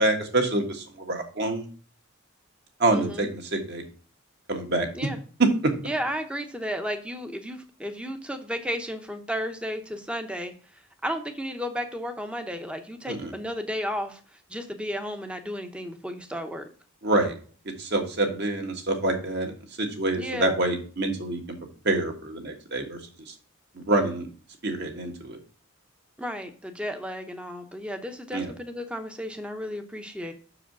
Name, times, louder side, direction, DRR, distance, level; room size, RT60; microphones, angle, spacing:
voice 1, 0.0-1.7 2.8-3.8 4.5-4.9 5.4-5.7 13.1-13.3 17.0-17.3 17.8-19.5 19.8-21.4 21.8-23.0 23.3-23.4 23.7-24.3 24.6-25.4 28.3-28.5, right 2 dB, 55° right, 3 dB, 1.6 m, -26 dB
voice 2, 2.9-3.3 4.9-5.2 5.8-14.2 14.5-16.6 20.1-20.6 26.2-30.3, equal, 5° right, 6 dB, 0.7 m, -33 dB
6.5 x 4.9 x 5.9 m, 0.41 s
head